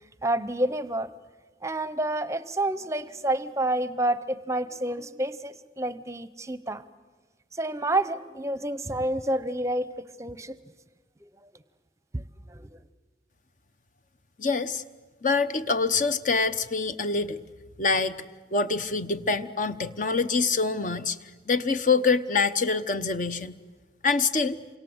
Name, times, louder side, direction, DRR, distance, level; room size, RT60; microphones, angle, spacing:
voice 1, 0.2-1.1 1.6-6.8 7.6-10.6 12.1-12.2 12.5-12.7, right 1 dB, 15° right, 14 dB, 0.8 m, -29 dB
voice 2, 14.4-14.8 15.2-17.4 17.8-18.2 18.5-21.2 21.5-23.5 24.0-24.6, left 4 dB, 45° left, 11 dB, 0.9 m, -25 dB
28.0 x 25.0 x 7.9 m, 1.3 s
head